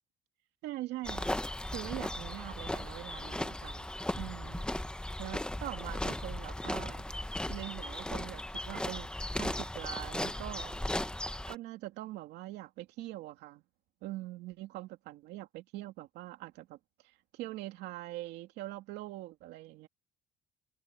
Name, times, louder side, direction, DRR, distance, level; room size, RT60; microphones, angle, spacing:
voice 1, 0.6-1.4 1.7-3.9 4.2-4.7 5.2-7.0 7.5-10.8 11.1-13.6 14.0-16.8 17.0-19.9, right 16 dB, 90° right, 2.5 m, -43 dB
sound 1, 1.0-11.6, left 1 dB, 5° left, 1.0 m, -37 dB
cardioid pair, 110°, 17 cm